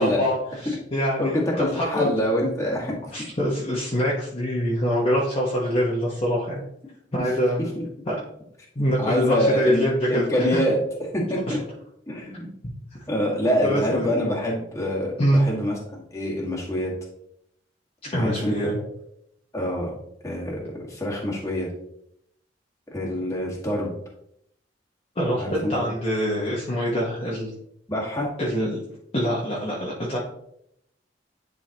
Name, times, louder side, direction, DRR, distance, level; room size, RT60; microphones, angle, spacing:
voice 1, 0.0-1.4 1.7-2.1 3.1-6.6 7.1-7.6 8.1-8.2 8.7-10.6 11.5-11.6 13.6-14.1 15.2-15.4 18.1-18.8 25.1-27.5 28.4-28.8 29.1-30.2, equal, 35° left, -6 dB, 1.2 m, -24 dB
voice 2, 1.2-3.0 7.1-7.2 9.0-10.8 11.1-11.6 12.1-12.5 13.1-16.9 18.1-18.5 19.5-19.9 20.2-21.7 22.9-23.9 25.4-25.7 27.9-28.3, equal, 20° left, -3 dB, 1.7 m, -25 dB
10.5 x 3.9 x 2.9 m, 0.75 s
head